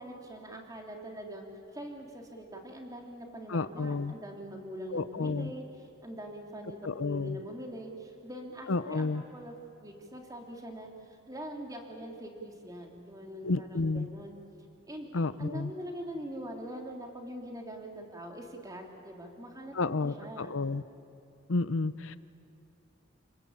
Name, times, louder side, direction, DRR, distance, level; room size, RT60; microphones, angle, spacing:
voice 1, 0.0-1.5 1.7-5.6 6.0-14.4 14.9-15.1 15.4-20.6, equal, 20° right, 2 dB, 3.3 m, -43 dB
voice 2, 3.5-4.1 4.9-5.5 6.8-7.4 8.7-9.2 13.4-14.1 15.1-15.7 19.7-20.8 21.5-22.2, left 3 dB, 90° left, 15 dB, 0.7 m, -31 dB
29.0 x 20.0 x 8.8 m, 2.6 s
head